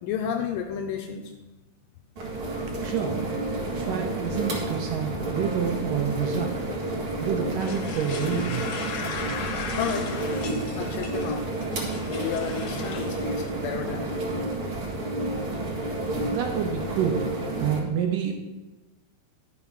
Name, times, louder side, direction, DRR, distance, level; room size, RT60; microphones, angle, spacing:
voice 1, 0.0-1.3 9.8-10.1 10.8-11.4 12.1-14.1, left 8 dB, 80° left, 4 dB, 2.0 m, -31 dB
sound 1, 2.2-17.8, right 2 dB, 50° right, 1.7 m, -30 dB
voice 2, 2.8-3.2 3.7-6.5 7.2-8.6 16.3-17.3 17.6-18.3, right 7 dB, 75° right, 3 dB, 2.1 m, -28 dB
sound 2, 7.6-13.5, left 5 dB, 60° left, 2.3 m, -37 dB
11.0 x 5.9 x 5.7 m, 1.1 s
omnidirectional pair, 4.4 m